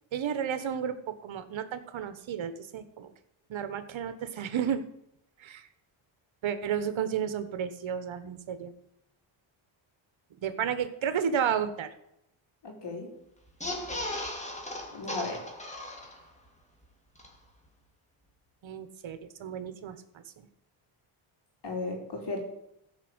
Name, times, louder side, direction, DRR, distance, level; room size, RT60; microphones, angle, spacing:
voice 1, 0.1-3.1 3.5-4.8 5.4-5.7 6.4-8.7 10.4-11.9 18.6-20.5, right 8 dB, 65° right, 11 dB, 1.3 m, -32 dB
voice 2, 12.6-13.1 14.9-15.4 21.6-22.4, left 3 dB, 55° left, 2 dB, 4.1 m, -35 dB
sound 1, 13.5-16.5 16.8-16.9 17.2-17.3, left 1 dB, 15° left, 2.5 m, -37 dB
15.0 x 5.4 x 7.9 m, 0.78 s
cardioid pair, 90°, 50 cm